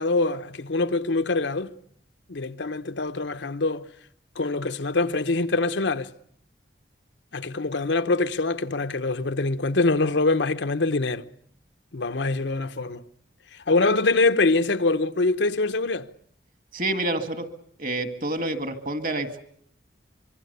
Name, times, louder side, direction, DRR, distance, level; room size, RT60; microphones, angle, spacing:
voice 1, 0.0-1.7 2.3-3.9 4.4-6.1 7.3-11.2 11.9-13.0 13.5-16.1, left 3 dB, 80° left, 0.9 m, -24 dB
voice 2, 16.7-17.5 17.8-19.4, right 1 dB, 45° right, 1.9 m, -28 dB
25.0 x 23.0 x 6.8 m
head